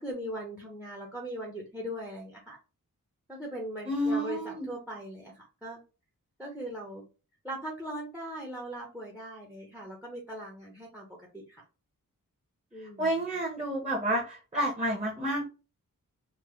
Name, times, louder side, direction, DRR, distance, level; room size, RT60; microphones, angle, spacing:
voice 1, 0.0-2.6 3.3-5.8 6.4-7.0 7.4-11.1 11.3-11.6 12.7-13.4, equal, 5° right, 0 dB, 0.9 m, -40 dB
voice 2, 3.9-4.7 13.0-15.4, right 1 dB, 20° right, -4 dB, 1.2 m, -30 dB
3.7 x 2.1 x 3.2 m, 0.32 s
wide cardioid pair, 100°, 33 cm